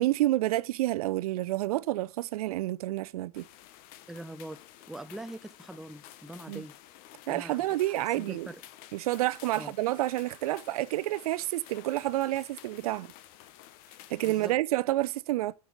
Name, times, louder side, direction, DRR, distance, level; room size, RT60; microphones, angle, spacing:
voice 1, 0.0-3.5 6.5-6.6 7.3-8.5 8.9-13.1 14.1-15.5, right 16 dB, 70° right, 0.5 m, -29 dB
sound 1, 3.3-14.6, left 13 dB, 50° left, 0.9 m, -52 dB
voice 2, 4.1-4.6 4.9-6.7 7.3-7.8 8.2-8.6 9.5-9.7 14.2-14.5, right 1 dB, ahead, 0.5 m, -42 dB
8.7 x 6.7 x 4.9 m
hypercardioid pair, 120°, 20 cm